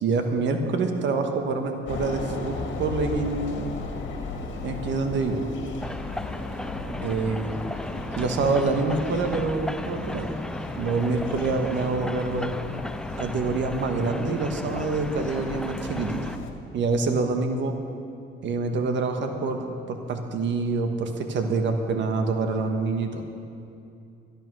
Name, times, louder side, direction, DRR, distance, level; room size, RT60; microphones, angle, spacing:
voice 1, 0.0-3.7 4.6-5.5 7.0-7.6 8.1-10.4 10.7-12.6 13.2-16.4 16.7-17.7 18.4-23.2, right 3 dB, 65° right, 5 dB, 1.5 m, -26 dB
sound 1, 1.9-16.5, left 4 dB, 70° left, 1.8 m, -36 dB
sound 2, 5.8-16.4, left 1 dB, 5° left, 0.3 m, -35 dB
12.0 x 11.0 x 6.2 m, 2.6 s
cardioid pair, 90°, 20 cm